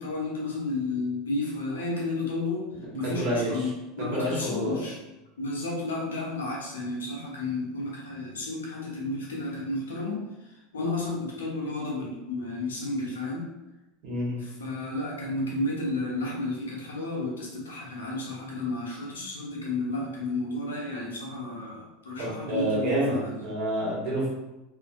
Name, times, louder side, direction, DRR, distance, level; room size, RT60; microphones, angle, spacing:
voice 1, 0.0-5.0 5.4-13.5 14.4-23.4, left 2 dB, 90° left, -3 dB, 0.9 m, -32 dB
voice 2, 3.0-3.7 4.0-4.8 14.0-14.4 22.2-24.3, equal, 65° right, -5 dB, 1.4 m, -28 dB
2.9 x 2.6 x 2.4 m, 1.0 s
hypercardioid pair, 90°, 0 cm